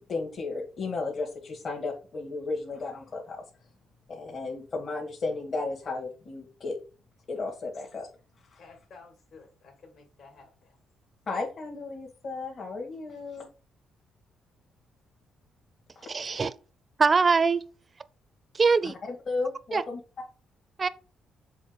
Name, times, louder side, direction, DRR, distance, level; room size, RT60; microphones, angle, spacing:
voice 1, 0.0-3.4 4.1-6.8 7.3-8.1 8.5-8.6 11.3-13.4 16.0-16.1 18.8-20.0, left 3 dB, 50° left, 2.1 m, -34 dB
voice 2, 8.6-10.8, left 4 dB, 70° left, 2.8 m, -53 dB
voice 3, 16.1-16.5 17.0-17.6 18.5-18.9 19.7-19.8 20.8-20.9, right 4 dB, 35° right, 0.5 m, -22 dB
7.1 x 3.6 x 5.3 m
cardioid pair, 90°, 0 cm